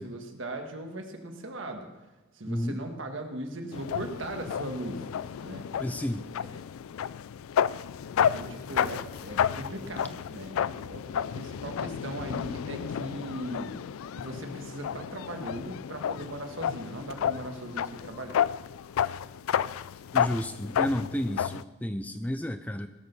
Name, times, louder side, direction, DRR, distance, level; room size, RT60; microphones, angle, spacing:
voice 1, 0.0-1.9 2.3-5.0 5.4-5.6 6.4-6.6 8.2-13.8 14.1-18.4, right 1 dB, 65° right, 4 dB, 1.6 m, -39 dB
voice 2, 2.5-2.8 5.8-6.3 20.1-22.9, equal, 5° left, 10 dB, 0.4 m, -31 dB
sound 1, 3.7-21.6, left 8 dB, 85° left, 0.3 m, -31 dB
18.0 x 6.6 x 6.8 m, 1.2 s
head